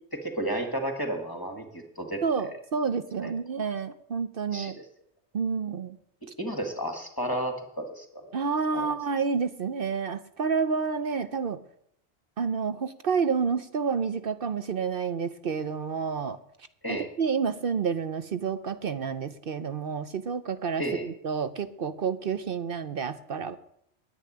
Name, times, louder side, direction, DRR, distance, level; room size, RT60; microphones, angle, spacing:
voice 1, 0.1-1.7 2.0-2.5 3.2-3.3 4.5-4.8 6.4-8.4 8.7-8.9 16.8-17.1 20.8-21.1, right 1 dB, 20° left, 4 dB, 1.6 m, -32 dB
voice 2, 2.2-4.7 5.3-6.0 8.3-11.6 12.4-16.4 16.9-23.6, right 5 dB, 55° right, 11 dB, 0.9 m, -29 dB
10.0 x 8.4 x 9.8 m, 0.73 s
omnidirectional pair, 1.2 m